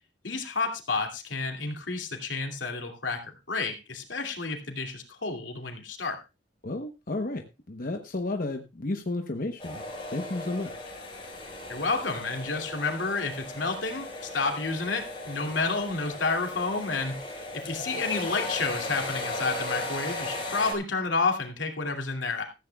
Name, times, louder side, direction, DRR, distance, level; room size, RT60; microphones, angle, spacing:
voice 1, 0.2-6.2 11.7-22.4, left 3 dB, 85° left, 3 dB, 2.6 m, -30 dB
voice 2, 6.6-9.8 10.1-10.9, left 2 dB, 50° left, 4 dB, 1.0 m, -32 dB
sound 1, 9.6-20.7, left 2 dB, 30° left, 4.9 m, -37 dB
16.0 x 14.0 x 2.3 m, 0.28 s
head